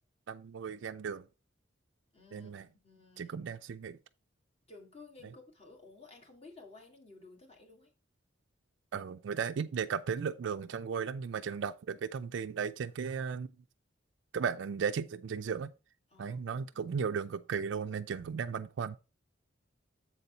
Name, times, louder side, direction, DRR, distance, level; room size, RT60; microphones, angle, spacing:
voice 1, 0.3-1.2 2.3-2.7 3.2-4.0 8.9-13.5 14.3-15.7 16.2-19.0, right 6 dB, 65° right, 0.3 m, -35 dB
voice 2, 2.1-3.4 4.7-7.9 16.1-17.0, left 3 dB, 30° left, 1.9 m, -55 dB
7.5 x 4.0 x 5.6 m
head